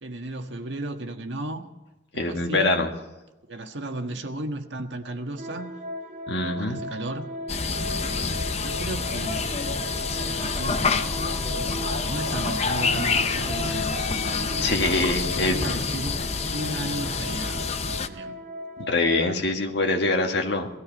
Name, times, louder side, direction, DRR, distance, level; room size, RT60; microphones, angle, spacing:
voice 1, 0.0-1.7 2.3-2.8 3.5-5.7 6.4-7.3 7.9-9.8 10.2-11.2 11.6-15.0 15.3-18.4, right 1 dB, 75° right, 1.5 m, -35 dB
voice 2, 2.1-2.9 6.3-6.8 14.6-15.8 18.8-20.7, left 2 dB, 65° left, 1.9 m, -24 dB
sound 1, 5.4-19.3, equal, 40° right, 0.9 m, -37 dB
sound 2, 7.5-18.1, left 4 dB, 35° left, 0.7 m, -27 dB
sound 3, 10.4-16.9, left 1 dB, 25° right, 3.4 m, -44 dB
18.5 x 13.5 x 5.3 m
head